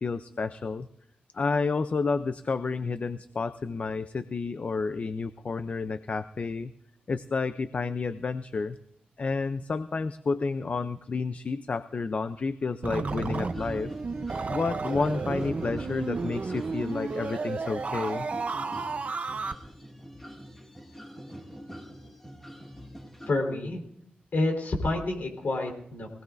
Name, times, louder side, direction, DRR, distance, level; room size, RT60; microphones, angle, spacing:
voice 1, 0.0-0.9 1.3-6.7 7.1-8.8 9.2-13.9 14.5-18.3, left 4 dB, 45° left, 12 dB, 0.4 m, -30 dB
sound 1, 12.8-19.5, right 4 dB, 45° right, 0.7 m, -32 dB
sound 2, 13.1-23.3, equal, 10° left, 2.1 m, -45 dB
voice 2, 23.3-23.8 24.3-26.1, left 2 dB, 60° left, 2 dB, 3.9 m, -28 dB
24.0 x 18.0 x 2.5 m, 0.71 s
wide cardioid pair, 130°, 3 cm